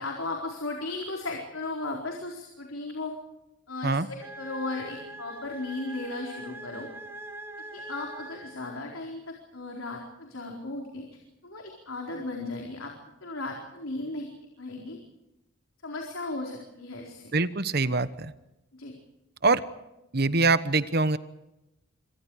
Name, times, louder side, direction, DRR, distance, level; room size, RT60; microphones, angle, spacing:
voice 1, 0.0-3.2 3.7-6.9 7.7-11.0 11.4-12.9 13.2-14.3 14.6-15.0 15.8-17.3 18.8-18.9, left 2 dB, 85° left, 0 dB, 4.3 m, -36 dB
sound 1, 4.2-9.1, right 1 dB, 10° right, 2.4 m, -43 dB
voice 2, 17.3-18.3 19.4-19.6 20.1-21.2, right 3 dB, 50° right, 14 dB, 1.1 m, -24 dB
27.0 x 25.5 x 4.9 m, 0.92 s
head